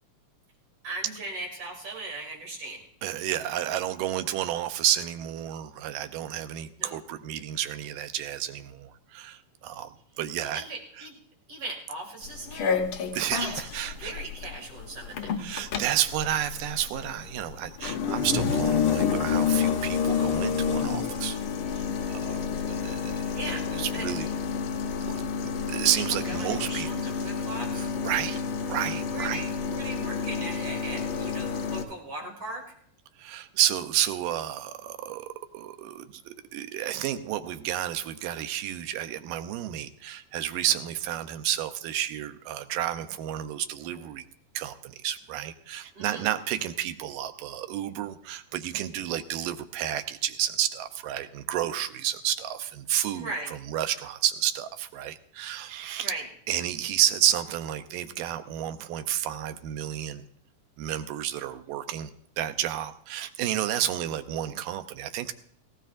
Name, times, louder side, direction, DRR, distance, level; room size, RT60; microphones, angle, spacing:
voice 1, 0.8-2.8 6.8-7.0 10.4-11.2 11.5-12.8 13.4-13.6 14.0-15.3 23.3-23.7 23.9-24.1 25.9-27.9 29.1-32.6 45.9-46.3 53.1-53.5 56.0-56.3, right 2 dB, 45° right, 0 dB, 3.1 m, -38 dB
voice 2, 3.0-10.6 11.0-11.1 13.1-14.2 15.4-21.4 21.7-22.4 22.7-23.3 23.7-24.3 25.0-25.1 25.4-26.9 28.0-28.4 28.7-29.5 33.2-44.3 44.5-53.3 53.7-56.1 56.5-60.2 60.8-62.1 62.4-65.3, right 11 dB, 85° right, 10 dB, 2.3 m, -31 dB
sound 1, 12.2-31.8, left 6 dB, 80° left, 1.1 m, -29 dB
17.5 x 17.0 x 2.5 m, 0.64 s
omnidirectional pair, 3.8 m